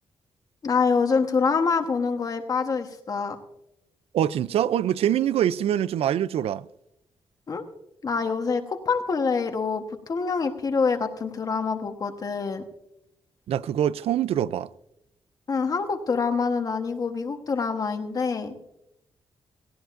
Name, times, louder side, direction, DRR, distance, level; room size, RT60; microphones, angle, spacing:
voice 1, 0.6-3.4 7.5-7.6 8.0-12.6 15.5-18.5, left 5 dB, 40° left, 1.1 m, -26 dB
voice 2, 4.1-6.7 13.5-14.7, right 10 dB, 80° right, 0.4 m, -24 dB
18.5 x 16.5 x 2.5 m
wide cardioid pair, 155°, 10 cm